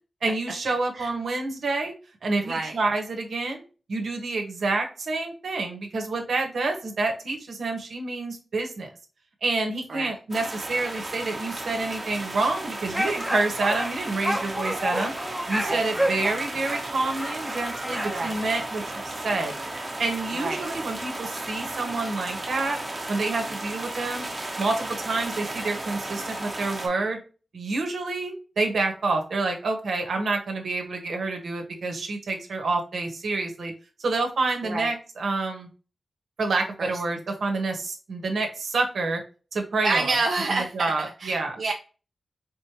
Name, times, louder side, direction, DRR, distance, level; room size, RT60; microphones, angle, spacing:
voice 1, 0.2-1.9 2.2-3.6 3.9-8.9 9.4-15.1 15.5-19.5 20.0-22.8 23.1-24.3 24.6-27.2 27.5-33.7 34.0-35.7 36.4-39.2 39.5-40.1 40.5-41.6, right 3 dB, 80° right, 3 dB, 1.2 m, -28 dB
voice 2, 2.5-2.8 9.9-10.1 15.6-15.9 16.2-16.3 18.1-18.4 20.4-20.6 34.6-34.9 36.8-36.9 39.8-40.9 41.2-41.7, right 3 dB, 60° right, 1 dB, 0.6 m, -28 dB
sound 1, 10.3-26.9, right 2 dB, 25° right, 1.1 m, -35 dB
sound 2, 12.9-18.3, equal, ahead, 0.7 m, -30 dB
4.3 x 3.2 x 2.9 m, 0.35 s
wide cardioid pair, 165°, 0 cm